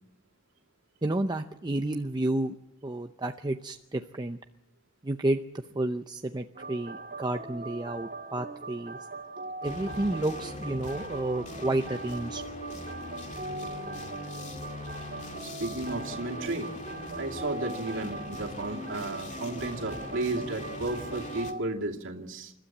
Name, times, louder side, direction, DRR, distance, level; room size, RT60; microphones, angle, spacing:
voice 1, 1.0-2.6 2.8-4.4 5.0-9.0 9.6-12.4, right 1 dB, 20° right, 6 dB, 0.7 m, -31 dB
sound 1, 6.5-21.6, right 3 dB, 45° right, 2.3 m, -41 dB
sound 2, 9.6-21.5, left 2 dB, 35° left, 2.3 m, -41 dB
voice 2, 15.4-16.7 17.1-22.5, right 2 dB, 70° right, 0 dB, 2.5 m, -33 dB
29.0 x 13.0 x 7.3 m, 0.91 s
head